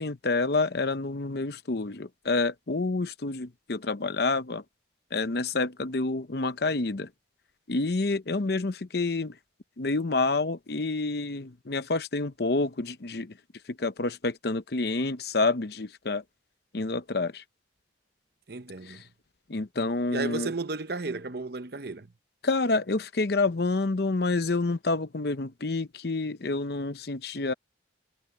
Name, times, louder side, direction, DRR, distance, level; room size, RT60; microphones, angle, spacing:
voice 1, 0.0-4.6 5.1-7.1 7.7-9.3 9.8-13.3 13.8-16.2 16.7-17.4 18.9-19.0 19.5-20.5 22.4-27.5, left 3 dB, 55° left, 0.8 m, -28 dB
voice 2, 18.5-19.0 20.1-22.1, right 3 dB, 55° right, 0.9 m, -33 dB
head